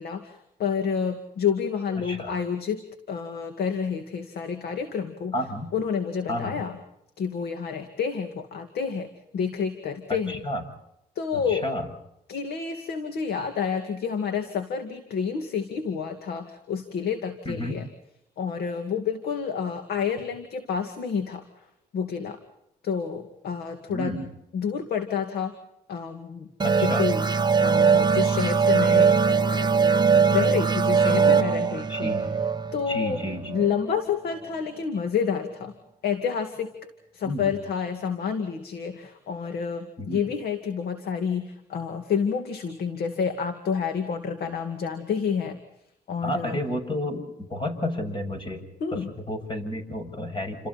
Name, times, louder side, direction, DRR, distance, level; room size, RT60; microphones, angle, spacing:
voice 1, 0.0-2.8 3.1-5.3 5.7-6.8 7.2-9.1 9.3-10.4 11.2-11.7 12.3-17.8 18.4-21.4 21.9-22.4 22.8-24.1 24.5-25.5 25.9-26.5 26.8-27.2 27.6-29.7 30.3-32.1 32.7-33.2 33.5-35.7 36.0-36.7 37.1-45.6 46.1-46.6 48.8-49.1, left 6 dB, 75° left, 7 dB, 2.4 m, -29 dB
voice 2, 2.0-2.3 5.3-5.7 6.3-6.7 10.3-10.6 11.3-11.9 17.5-17.8 23.9-24.3 26.6-27.1 31.1-31.3 31.9-32.3 32.9-33.5 37.2-37.5 40.0-40.3 46.2-50.7, left 1 dB, 30° left, 5 dB, 7.5 m, -31 dB
sound 1, 26.6-33.9, right 5 dB, 25° right, 0.9 m, -21 dB
29.5 x 28.0 x 4.4 m, 0.81 s
cardioid pair, 85°, 16 cm